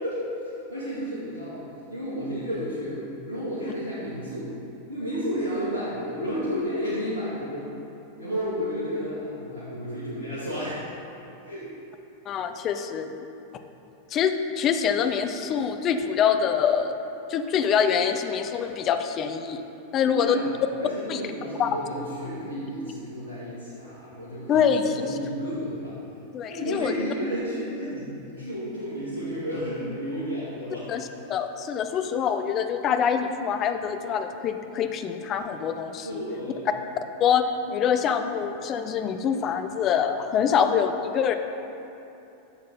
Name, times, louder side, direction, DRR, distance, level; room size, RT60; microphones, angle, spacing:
voice 1, 0.0-4.5 4.9-7.7 8.2-10.8 11.4-11.7 20.1-25.9 26.5-30.9 36.0-36.7, equal, 75° right, -11 dB, 2.3 m, -32 dB
voice 2, 12.3-13.3 14.1-16.9 17.3-19.6 19.9-20.4 21.1-21.2 21.6-21.7 24.5-25.1 26.3-26.9 30.9-36.2 37.2-41.3, left 7 dB, 30° left, 7 dB, 0.6 m, -25 dB
11.5 x 7.5 x 3.9 m, 2.9 s
figure-of-eight pair, 90°, 0 cm